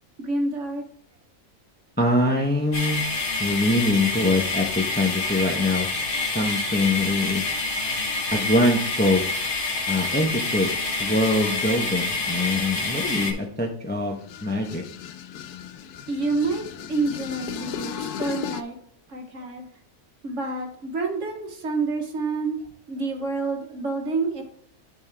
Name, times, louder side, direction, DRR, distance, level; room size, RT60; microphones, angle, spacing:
voice 1, 0.2-0.8 16.1-18.8 19.1-19.7 20.2-24.4, right 3 dB, 55° right, 2 dB, 1.5 m, -28 dB
voice 2, 2.0-3.0 3.4-5.9 6.3-7.5 8.3-9.2 9.9-10.7 11.0-14.8, left 2 dB, 10° left, 1 dB, 0.7 m, -23 dB
sound 1, 2.7-13.3, left 3 dB, 40° left, 1.2 m, -27 dB
sound 2, 14.2-18.6, left 8 dB, 90° left, 1.1 m, -36 dB
10.5 x 4.4 x 3.4 m, 0.66 s
omnidirectional pair, 1.6 m